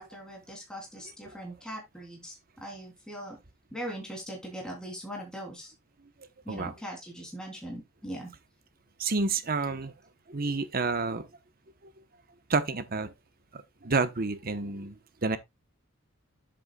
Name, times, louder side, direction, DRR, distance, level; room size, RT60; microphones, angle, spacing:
voice 1, 0.0-3.4 3.7-5.7 6.4-8.3, equal, 5° left, 3.3 m, -40 dB
voice 2, 9.0-9.9 10.3-11.3 12.5-13.1 13.5-15.4, right 3 dB, 45° right, 1.0 m, -29 dB
9.5 x 7.9 x 2.3 m
head